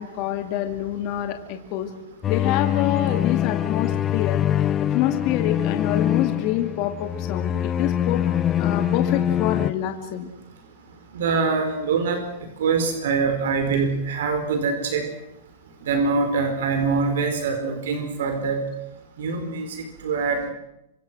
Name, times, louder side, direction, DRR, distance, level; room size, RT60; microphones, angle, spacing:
voice 1, 0.0-1.9 2.3-8.2 8.6-10.3, left 12 dB, 45° left, 5 dB, 2.3 m, -27 dB
sound 1, 2.2-9.7, left 10 dB, 25° left, 0.9 m, -24 dB
voice 2, 11.1-12.2 12.6-15.1 15.8-18.7 19.2-20.5, right 4 dB, 80° right, 6 dB, 4.6 m, -24 dB
26.0 x 24.5 x 6.2 m, 0.86 s
supercardioid pair, 145°, 0 cm